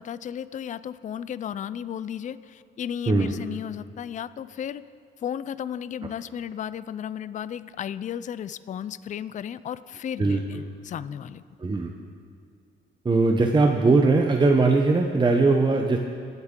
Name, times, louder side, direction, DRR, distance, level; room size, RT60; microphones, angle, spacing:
voice 1, 0.0-4.8 5.2-11.4, left 9 dB, 40° left, 15 dB, 0.4 m, -34 dB
voice 2, 3.1-3.4 10.2-10.4 11.6-11.9 13.0-16.0, right 3 dB, 25° right, 3 dB, 0.8 m, -20 dB
24.0 x 8.1 x 3.7 m, 2.3 s
cardioid pair, 90°, 20 cm